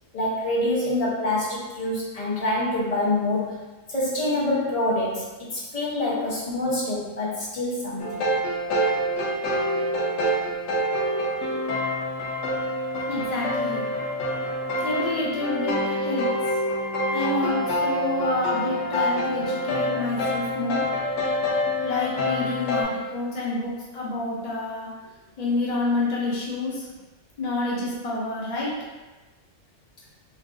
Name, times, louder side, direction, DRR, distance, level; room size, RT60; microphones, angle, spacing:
voice 1, 0.1-3.6 3.9-8.2, left 1 dB, 40° left, -6 dB, 0.6 m, -26 dB
sound 1, 8.0-22.8, equal, 70° left, 1.0 m, -26 dB
voice 2, 13.1-13.9 14.8-16.3 17.1-20.8 21.8-24.9 25.4-26.9 27.4-28.7, left 2 dB, 85° left, -5 dB, 0.3 m, -28 dB
3.4 x 2.3 x 2.4 m, 1.2 s
omnidirectional pair, 1.4 m